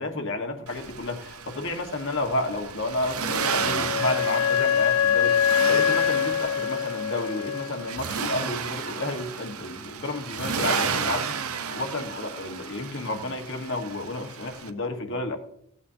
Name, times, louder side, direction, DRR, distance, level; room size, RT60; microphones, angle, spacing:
voice 1, 0.0-11.3 11.7-15.4, left 2 dB, 60° left, 4 dB, 1.5 m, -31 dB
Accelerating revving vroom, 0.7-14.7, right 6 dB, 75° right, 0.7 m, -33 dB
Wind instrument woodwind instrument, 3.3-7.9, left 8 dB, 90° left, 0.3 m, -24 dB
16.5 x 8.5 x 2.8 m, 0.73 s
head